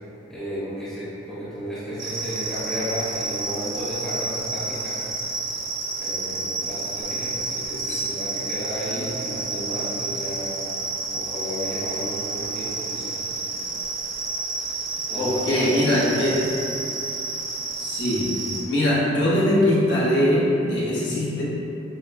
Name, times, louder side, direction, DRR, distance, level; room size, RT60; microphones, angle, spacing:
voice 1, 0.3-5.0 6.0-10.6 11.1-13.2 15.1-16.1, equal, 5° left, -13 dB, 1.0 m, -33 dB
sound 1, 2.0-18.6, right 3 dB, 65° right, 0.5 m, -30 dB
voice 2, 15.1-16.3 17.8-18.3 18.7-21.4, left 1 dB, 65° left, -8 dB, 1.0 m, -21 dB
6.2 x 2.2 x 2.5 m, 2.9 s
head